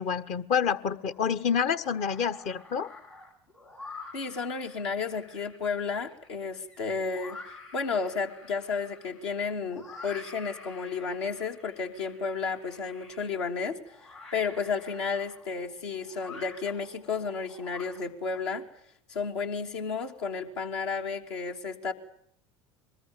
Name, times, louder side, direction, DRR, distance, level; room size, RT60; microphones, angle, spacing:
voice 1, 0.0-2.9, left 7 dB, 50° left, 11 dB, 1.5 m, -28 dB
sound 1, 0.6-1.3 1.7-18.4, left 3 dB, 85° left, 6.3 m, -49 dB
voice 2, 4.1-7.4 7.7-18.6 19.1-21.9, left 5 dB, 70° left, 3 dB, 3.0 m, -32 dB
23.5 x 20.5 x 8.9 m, 0.67 s
figure-of-eight pair, 65°, 15 cm